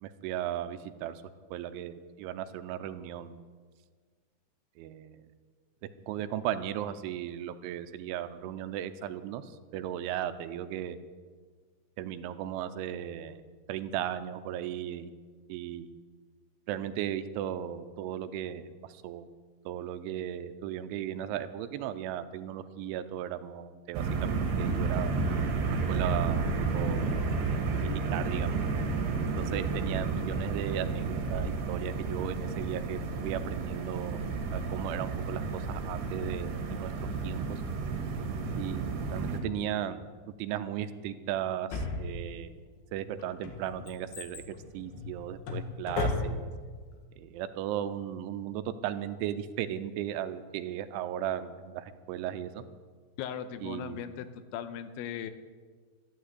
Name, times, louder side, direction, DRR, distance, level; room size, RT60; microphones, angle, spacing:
voice 1, 0.0-1.1 1.5-3.4 4.8-5.2 6.1-9.4 9.7-11.0 12.0-13.4 13.7-15.1 15.5-15.9 16.7-18.6 19.0-19.3 19.7-25.1 25.7-27.1 27.5-28.6 29.4-34.2 34.5-35.4 35.7-36.9 37.2-37.6 38.6-40.1 40.4-42.6 42.9-44.4 44.7-46.5 47.2-52.6 53.6-54.0, right 11 dB, 85° right, 11 dB, 3.1 m, -36 dB
sound 1, 23.9-39.4, right 4 dB, 65° right, 3.7 m, -31 dB
Drawer open or close, 41.7-42.6 43.2-46.7 46.9-47.0, left 3 dB, 60° left, 3.1 m, -35 dB
voice 2, 53.2-54.3 54.5-55.3, left 9 dB, 80° left, 10 dB, 3.1 m, -38 dB
12.5 x 12.0 x 8.0 m, 1.5 s
omnidirectional pair, 5.4 m